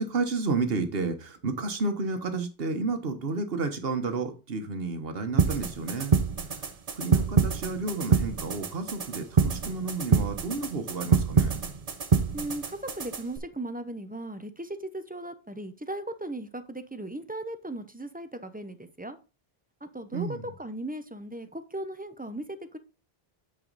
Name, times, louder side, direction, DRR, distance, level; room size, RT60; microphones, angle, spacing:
voice 1, 0.0-6.2 6.9-11.6 20.1-20.5, right 3 dB, 70° right, 1.3 m, -31 dB
sound 1, 5.4-13.4, right 5 dB, 40° right, 0.8 m, -26 dB
voice 2, 12.3-19.2 19.8-20.3 20.6-22.8, right 1 dB, 10° right, 0.5 m, -37 dB
9.1 x 4.8 x 4.0 m
omnidirectional pair, 1.0 m